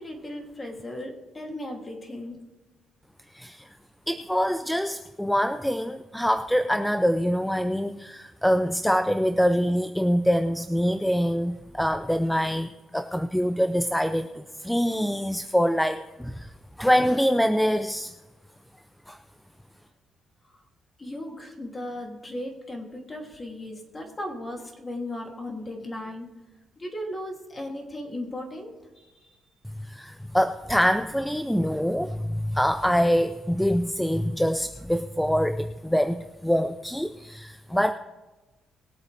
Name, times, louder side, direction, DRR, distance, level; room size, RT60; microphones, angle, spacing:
voice 1, 0.0-2.4 21.0-26.3 26.8-29.1, left 1 dB, 25° left, 1 dB, 2.9 m, -36 dB
voice 2, 3.3-3.7 4.1-16.5 16.8-18.1 19.1-19.2 29.9-37.9, equal, 5° left, 9 dB, 0.5 m, -25 dB
21.5 x 8.2 x 3.4 m, 1.1 s
cardioid pair, 90°, 0 cm